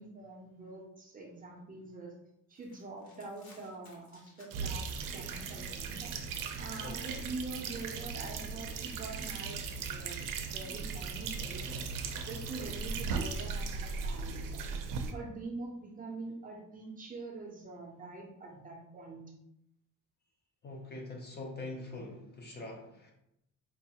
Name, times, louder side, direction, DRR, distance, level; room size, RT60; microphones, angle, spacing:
voice 1, 0.0-2.1 2.5-6.1 6.6-11.8 12.2-14.6 15.1-19.2, right 3 dB, 25° right, -1 dB, 0.5 m, -45 dB
sound 1, 2.5-5.9 6.2-7.9 8.1-10.3, left 2 dB, 55° left, 1.0 m, -62 dB
sound 2, 4.5-15.1, right 5 dB, 75° right, 0.5 m, -38 dB
voice 2, 20.6-23.1, left 2 dB, 30° left, 1 dB, 0.5 m, -43 dB
4.5 x 2.4 x 2.8 m, 0.81 s
cardioid pair, 175°, 32 cm